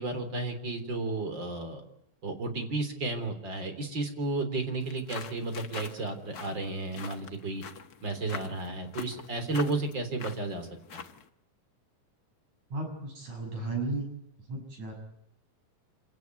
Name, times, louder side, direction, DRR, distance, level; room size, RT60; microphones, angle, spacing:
voice 1, 0.0-1.8 2.2-7.6 8.0-11.0, right 2 dB, 35° right, 7 dB, 4.0 m, -33 dB
sound 1, 4.8-11.3, left 6 dB, 75° left, 0.8 m, -44 dB
voice 2, 12.7-14.1 14.5-14.9, right 2 dB, 55° right, 3 dB, 7.7 m, -34 dB
27.0 x 18.0 x 9.5 m, 0.81 s
omnidirectional pair, 3.9 m